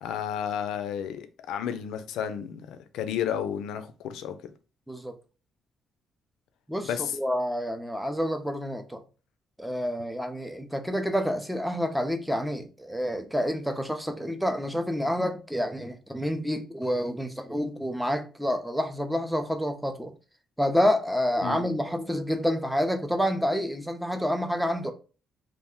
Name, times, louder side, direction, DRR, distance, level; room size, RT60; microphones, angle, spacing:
voice 1, 0.0-4.3 6.8-7.1 21.4-21.6, left 9 dB, 85° left, 0.3 m, -32 dB
voice 2, 6.7-9.0 9.6-20.1 20.6-24.9, equal, ahead, 0.5 m, -28 dB
2.4 x 2.0 x 3.6 m
cardioid pair, 90°, 0 cm